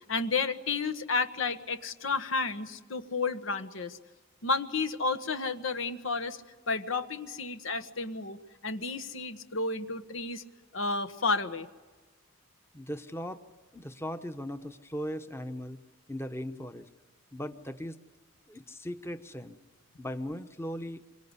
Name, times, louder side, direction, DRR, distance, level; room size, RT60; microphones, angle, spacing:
voice 1, 0.1-4.0 4.4-6.4 6.7-8.4 8.6-10.4 10.7-11.7, left 4 dB, 80° left, 9 dB, 1.4 m, -31 dB
voice 2, 12.7-13.4 13.7-15.8 16.1-16.9 17.3-18.0 18.5-19.6 20.0-21.0, equal, 15° left, 8 dB, 1.0 m, -38 dB
26.5 x 24.0 x 8.3 m, 1.3 s
head